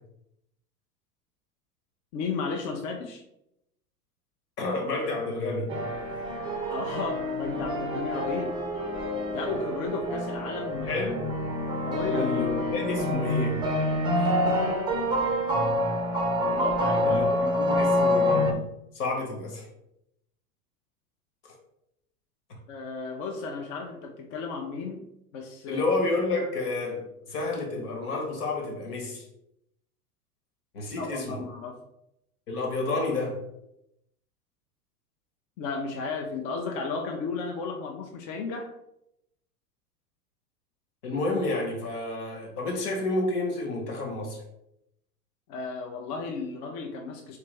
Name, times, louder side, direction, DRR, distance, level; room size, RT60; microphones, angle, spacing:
voice 1, 2.1-3.2 6.7-8.5 9.1-11.0 11.8-12.3 16.5-17.2 22.7-25.8 31.0-31.8 35.6-38.7 45.5-47.4, left 4 dB, 45° left, 2 dB, 0.6 m, -34 dB
voice 2, 4.6-5.7 10.8-11.3 12.1-13.6 14.2-14.3 17.1-18.6 18.9-19.7 21.4-21.5 25.7-29.2 30.7-31.4 32.5-33.4 41.0-44.4, left 2 dB, 75° left, 1 dB, 1.4 m, -30 dB
sound 1, 5.7-18.5, left 1 dB, 10° right, 0.4 m, -27 dB
3.4 x 3.3 x 3.2 m, 0.82 s
hypercardioid pair, 100°, 46 cm